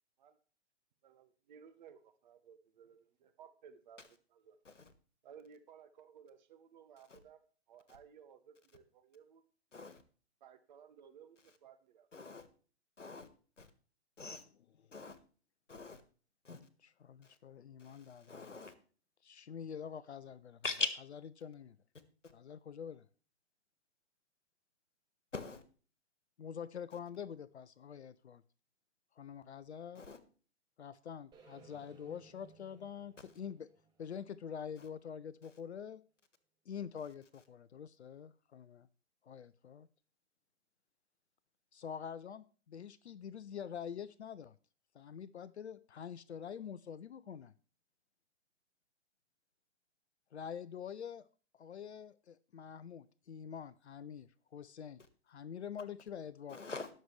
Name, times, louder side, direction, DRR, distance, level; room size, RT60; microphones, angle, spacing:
voice 1, 1.0-4.0 4.3-4.6 5.2-7.4 7.7-9.4 10.4-12.1, right 7 dB, 40° right, 8 dB, 1.2 m, -58 dB
voice 2, 12.1-12.4 13.0-13.3 13.6-13.7 14.2-14.4 14.9-15.2 15.7-16.0 16.5-16.6 18.3-18.7 20.6-20.9 25.3-25.6 30.0-30.2 56.5-56.9, left 4 dB, 85° left, 12 dB, 1.5 m, -40 dB
voice 3, 16.8-18.3 19.2-20.6 21.1-21.8 22.3-23.1 26.4-28.4 29.2-30.0 30.8-33.7 34.0-36.0 36.7-38.9 39.2-39.9 41.7-44.6 44.9-47.5 50.3-51.3 51.5-56.6, left 7 dB, 65° left, 17 dB, 0.6 m, -46 dB
sound 1, 31.3-35.4, right 4 dB, 10° right, 1.4 m, -63 dB
19.5 x 6.6 x 3.2 m, 0.39 s
figure-of-eight pair, 125°, 36 cm